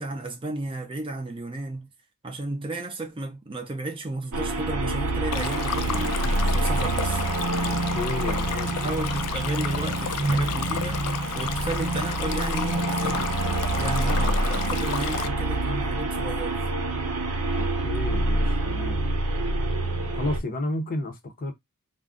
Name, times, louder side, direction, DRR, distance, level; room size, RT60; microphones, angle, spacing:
voice 1, 0.0-1.9 2.2-7.2 8.3-8.4 8.8-11.0 11.3-13.3 13.7-16.6, right 2 dB, 25° right, 0.5 m, -33 dB
sound 1, 4.3-20.4, right 2 dB, 85° right, 0.7 m, -26 dB
Stream, 5.3-15.3, left 10 dB, 85° left, 0.3 m, -33 dB
voice 2, 7.6-8.9 17.6-19.1 20.1-21.5, left 2 dB, 40° left, 0.6 m, -32 dB
2.4 x 2.0 x 3.5 m
head